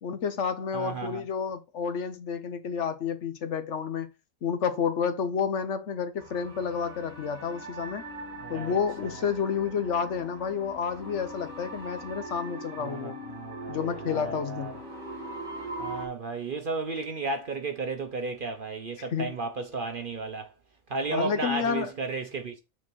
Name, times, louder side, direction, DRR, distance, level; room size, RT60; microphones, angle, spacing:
voice 1, 0.0-4.1 4.4-8.0 8.5-13.2 13.7-14.7 19.0-19.4 21.1-21.9, left 6 dB, 60° left, 1.0 m, -30 dB
voice 2, 0.7-1.2 8.4-8.8 12.8-14.7 15.8-20.5 20.9-22.6, right 3 dB, 45° right, 0.8 m, -33 dB
sound 1, 6.2-16.1, right 1 dB, 30° right, 2.7 m, -41 dB
6.2 x 4.1 x 6.1 m
omnidirectional pair, 1.5 m